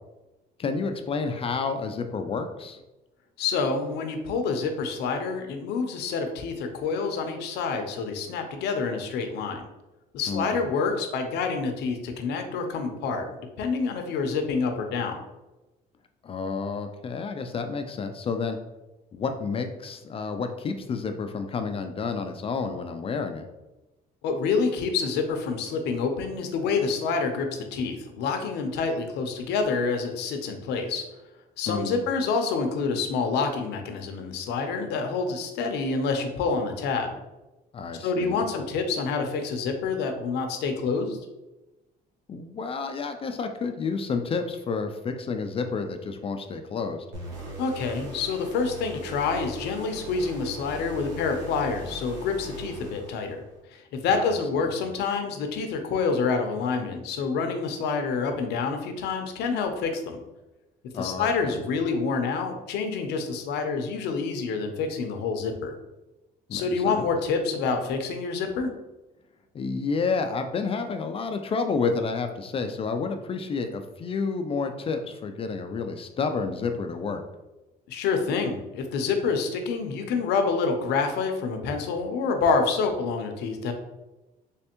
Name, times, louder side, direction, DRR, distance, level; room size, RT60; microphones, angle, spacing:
voice 1, 0.6-2.8 10.3-10.7 16.2-18.6 19.1-23.5 31.7-32.1 37.7-38.4 42.3-47.1 54.1-54.7 60.9-61.7 66.5-67.1 69.5-77.2, left 4 dB, 35° left, 6 dB, 0.4 m, -30 dB
voice 2, 3.4-9.7 10.1-15.1 24.2-31.0 31.6-37.1 38.0-41.2 47.6-53.4 53.7-60.2 60.9-65.7 66.5-68.7 77.9-83.7, left 4 dB, 80° left, 5 dB, 0.6 m, -27 dB
sound 1, 47.1-53.6, right 1 dB, 85° right, 1.1 m, -40 dB
3.4 x 3.2 x 2.9 m, 1.0 s
cardioid pair, 110°, 17 cm